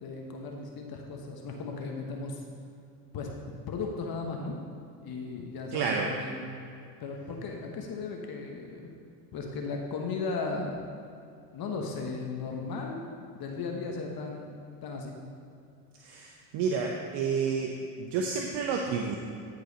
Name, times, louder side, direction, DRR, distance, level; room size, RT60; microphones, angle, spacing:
voice 1, 0.0-2.4 3.1-4.6 5.0-6.4 7.0-8.9 9.3-10.8 11.5-13.0 13.3-15.2, left 4 dB, 50° left, 1 dB, 1.2 m, -36 dB
voice 2, 5.7-6.1 16.0-16.3 16.5-17.7 18.0-19.2, right 5 dB, 65° right, 1 dB, 0.9 m, -29 dB
13.5 x 4.8 x 4.0 m, 2.5 s
supercardioid pair, 75°, 45 cm